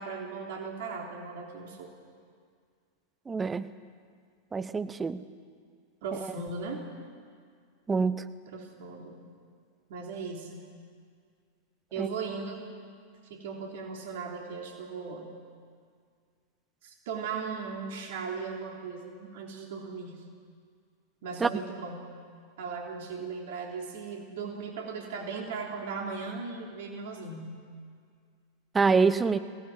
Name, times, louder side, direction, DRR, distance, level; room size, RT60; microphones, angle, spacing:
voice 1, 0.0-1.9 6.0-6.9 8.5-9.2 9.9-10.7 11.9-12.7 13.3-15.3 16.8-20.2 21.2-22.0 22.6-27.6, right 5 dB, 55° right, 1 dB, 3.3 m, -37 dB
voice 2, 3.3-3.7 4.5-5.2 7.9-8.2 12.0-12.1 21.4-21.5 28.7-29.4, right 4 dB, 15° right, 13 dB, 0.8 m, -25 dB
21.5 x 18.0 x 9.1 m, 2.1 s
figure-of-eight pair, 90°, 0 cm